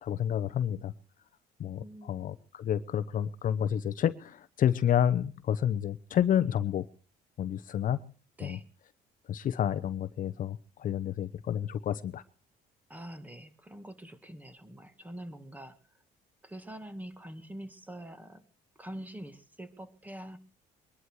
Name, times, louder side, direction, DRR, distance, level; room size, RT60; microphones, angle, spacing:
voice 1, 0.0-0.9 1.6-6.9 7.4-8.0 8.4-8.6 9.3-12.2, left 10 dB, 50° left, 13 dB, 0.9 m, -29 dB
voice 2, 1.8-2.2 8.4-8.6 12.9-16.0 16.4-18.4 18.8-20.4, right 1 dB, 10° right, 9 dB, 2.1 m, -45 dB
23.0 x 11.0 x 4.8 m, 0.38 s
cardioid pair, 110°, 17 cm